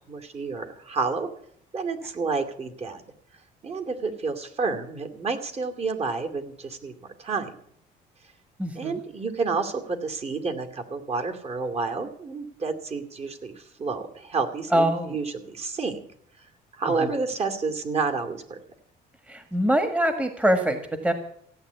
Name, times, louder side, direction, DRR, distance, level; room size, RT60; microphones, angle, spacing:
voice 1, 0.1-1.3 1.7-3.0 3.6-6.9 7.2-7.5 8.8-16.1 16.4-16.5 16.7-18.6, right 4 dB, 35° right, 7 dB, 2.4 m, -30 dB
voice 2, 8.6-9.0 14.7-15.2 17.0-17.1 19.3-21.1, right 1 dB, 10° right, 7 dB, 1.6 m, -24 dB
16.0 x 9.4 x 8.1 m, 0.68 s
cardioid pair, 110°, 17 cm